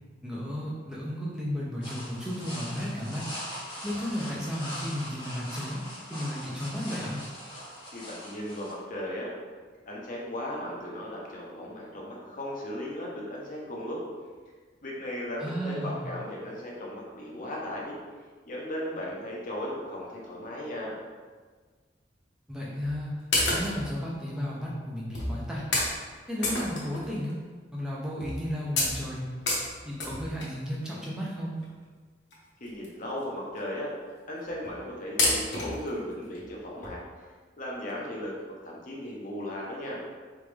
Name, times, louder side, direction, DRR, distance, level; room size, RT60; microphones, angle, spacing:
voice 1, 0.2-3.2 3.8-5.8 6.1-7.2 15.4-16.1 22.5-23.2 23.5-25.7 26.3-27.4 27.7-29.3 29.8-31.6, equal, 5° right, -6 dB, 0.6 m, -33 dB
sound 1, 1.8-8.7, equal, 25° left, 1.5 m, -41 dB
voice 2, 7.9-9.3 9.9-14.0 14.8-17.9 18.5-21.0 32.6-33.9 34.3-37.0 37.6-38.3 38.6-40.0, left 1 dB, 45° left, -3 dB, 0.9 m, -36 dB
sound 2, 22.8-22.9 23.3-23.9 24.6-24.7 25.1-25.3 25.7-25.9 26.4-27.3 27.7-27.8 28.2-28.4 28.8-30.6 31.6-31.7 32.3-32.4 32.6-32.9 33.2-33.3 33.6-33.7 34.4-34.7 35.2-35.9 36.3-36.4 36.8-36.9, left 2 dB, 70° left, 1.1 m, -28 dB
4.0 x 3.5 x 3.4 m, 1.5 s
head